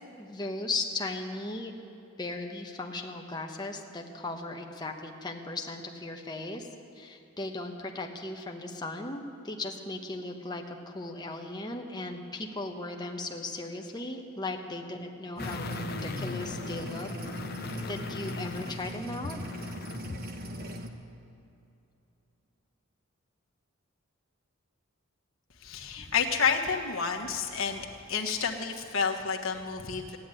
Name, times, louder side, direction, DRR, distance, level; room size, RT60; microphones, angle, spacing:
voice 1, 0.0-1.7 2.2-6.7 7.0-17.1 17.9-19.4 26.0-26.1, left 2 dB, 20° left, 2 dB, 1.2 m, -37 dB
sound 1, 15.4-20.3 20.6-20.7, left 3 dB, 50° left, 0.7 m, -39 dB
sound 2, 15.4-20.9, equal, 45° right, 1.1 m, -40 dB
voice 2, 25.6-30.2, left 6 dB, 70° left, 1 dB, 1.5 m, -30 dB
15.0 x 10.5 x 9.1 m, 2.8 s
head